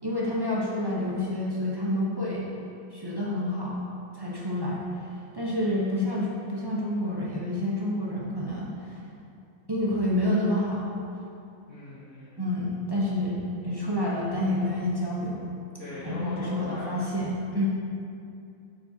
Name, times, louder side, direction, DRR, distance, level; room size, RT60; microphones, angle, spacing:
voice 1, 0.0-2.5 2.9-3.8 4.1-4.8 5.3-9.0 9.7-10.9 12.4-13.4 13.6-15.4 16.0-17.7, left 1 dB, 25° right, -6 dB, 0.6 m, -28 dB
voice 2, 11.7-12.5 15.8-17.1, left 2 dB, 60° left, -9 dB, 1.2 m, -40 dB
7.3 x 5.4 x 2.7 m, 2.6 s
omnidirectional pair, 1.5 m